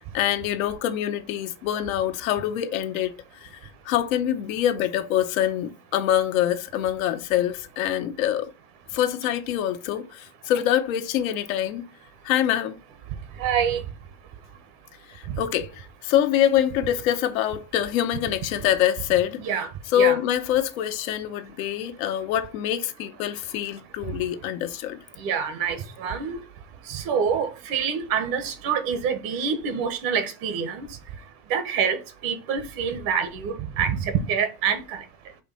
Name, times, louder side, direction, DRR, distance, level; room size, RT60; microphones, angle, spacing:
voice 1, 0.0-3.6 3.8-8.5 8.9-11.9 12.2-12.8 15.1-19.7 19.9-25.0, left 11 dB, 65° left, 0.9 m, -25 dB
voice 2, 13.4-13.8 19.4-19.7 19.9-20.2 25.2-26.4 26.9-30.9 31.5-35.0, right 7 dB, 50° right, 1.1 m, -26 dB
4.9 x 2.6 x 4.0 m
hypercardioid pair, 100°, 44 cm